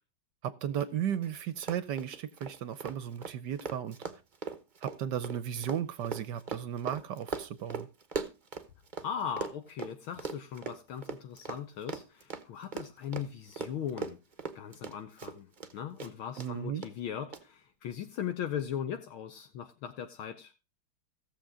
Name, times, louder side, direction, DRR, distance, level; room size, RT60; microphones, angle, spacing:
voice 1, 0.4-4.0 4.8-7.9 16.4-16.8, right 9 dB, 65° right, 1.1 m, -35 dB
Run, 0.8-0.9 1.1-1.3 1.6-9.1 9.4-15.7 16.0-16.5 16.8-16.9 17.3-17.4, right 5 dB, 45° right, 0.6 m, -39 dB
voice 2, 9.0-14.2 14.5-20.5, left 8 dB, 75° left, 1.6 m, -39 dB
16.5 x 7.1 x 3.6 m
omnidirectional pair, 2.4 m